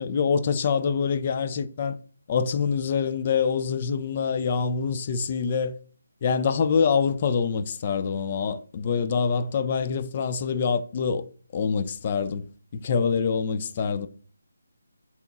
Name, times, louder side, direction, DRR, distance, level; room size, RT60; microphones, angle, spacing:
voice 1, 0.0-2.0 2.3-5.8 6.2-11.2 11.5-12.5 12.7-14.1, left 6 dB, 35° left, 0.3 m, -25 dB
6.7 x 3.0 x 2.3 m
figure-of-eight pair, 150°, 0 cm